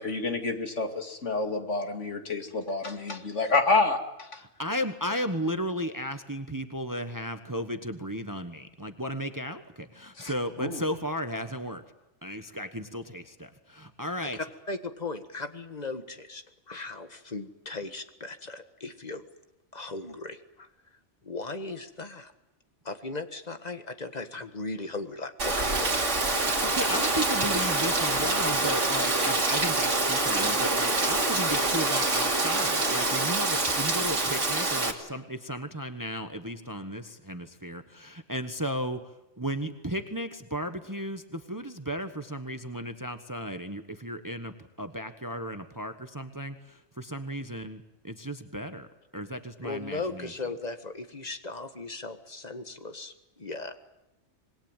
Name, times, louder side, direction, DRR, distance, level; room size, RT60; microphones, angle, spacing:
voice 1, 0.0-4.4 10.2-10.3 10.6-10.8, left 3 dB, 85° left, 5 dB, 2.8 m, -28 dB
voice 2, 4.6-11.8 12.2-14.4 26.6-39.1 39.4-48.9 49.1-50.3, equal, 15° right, 8 dB, 1.3 m, -34 dB
voice 3, 14.3-19.3 19.7-20.7 21.2-22.3 22.8-27.0 49.6-53.8, left 3 dB, 35° left, 8 dB, 1.7 m, -38 dB
Rain, 25.4-34.9, right 2 dB, 85° right, 3.1 m, -26 dB
26.0 x 21.5 x 9.1 m, 0.95 s
omnidirectional pair, 1.2 m